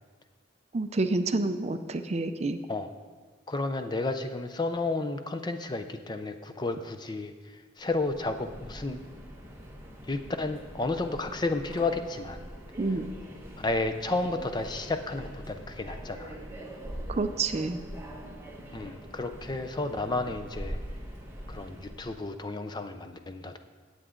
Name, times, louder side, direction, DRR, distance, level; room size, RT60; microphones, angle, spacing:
voice 1, 0.7-2.6 12.8-13.1 17.1-17.8, right 3 dB, 35° right, 9 dB, 0.4 m, -28 dB
voice 2, 3.5-9.0 10.0-12.4 13.6-16.4 18.7-20.8 21.5-23.6, left 2 dB, 20° left, 8 dB, 0.5 m, -32 dB
Subway metro underground, 7.8-22.2, equal, 15° right, 1.2 m, -43 dB
16.5 x 8.0 x 3.8 m, 1.4 s
head